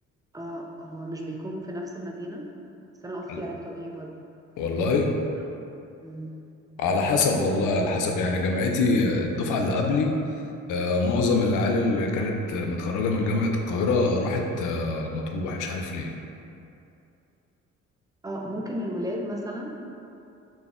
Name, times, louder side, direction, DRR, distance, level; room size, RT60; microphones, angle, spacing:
voice 1, 0.3-2.5 3.0-4.1 6.0-6.3 18.2-19.8, equal, 10° right, 0 dB, 0.4 m, -34 dB
voice 2, 4.6-5.2 6.8-10.2 10.7-16.1, left 3 dB, 80° left, 2 dB, 0.5 m, -24 dB
4.0 x 2.2 x 3.6 m, 2.6 s
cardioid pair, 90°, 30 cm